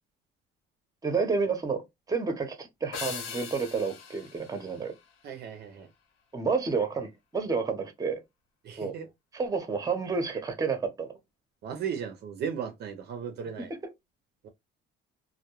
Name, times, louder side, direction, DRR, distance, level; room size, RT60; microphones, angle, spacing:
voice 1, 1.0-1.8 2.1-4.9 6.3-8.2 8.8-8.9 9.3-11.1, right 5 dB, 20° right, 0.7 m, -30 dB
sound 1, 2.9-5.6, left 6 dB, 85° left, 0.6 m, -41 dB
voice 2, 5.2-5.9 8.6-9.1 11.6-13.7 14.4-14.5, right 7 dB, 55° right, 0.5 m, -36 dB
2.2 x 2.1 x 2.9 m
cardioid pair, 105°, 20 cm